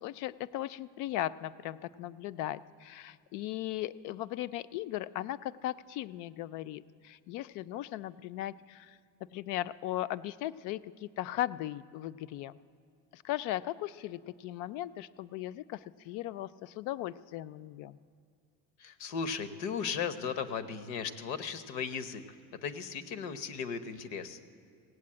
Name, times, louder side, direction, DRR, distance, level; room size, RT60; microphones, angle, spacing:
voice 1, 0.0-9.0 9.3-12.6 13.1-18.0, left 14 dB, 60° left, 17 dB, 0.4 m, -37 dB
voice 2, 18.8-22.2 22.5-24.4, left 6 dB, 85° left, 11 dB, 1.0 m, -36 dB
16.5 x 8.3 x 8.6 m, 2.3 s
cardioid pair, 160°, 34 cm